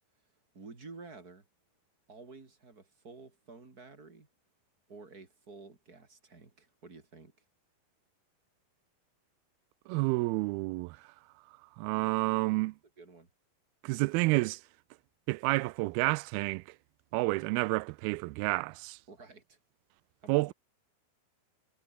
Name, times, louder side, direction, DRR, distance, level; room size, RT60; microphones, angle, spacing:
voice 1, 0.5-1.5 2.1-4.3 4.9-7.3 13.0-13.3 19.1-19.6 20.2-20.5, right 3 dB, 25° right, 3.6 m, -51 dB
voice 2, 9.9-11.1 11.8-12.8 13.8-14.6 15.3-16.8 17.1-19.0 20.3-20.5, right 23 dB, 80° right, 2.4 m, -30 dB
omnidirectional pair, 4.5 m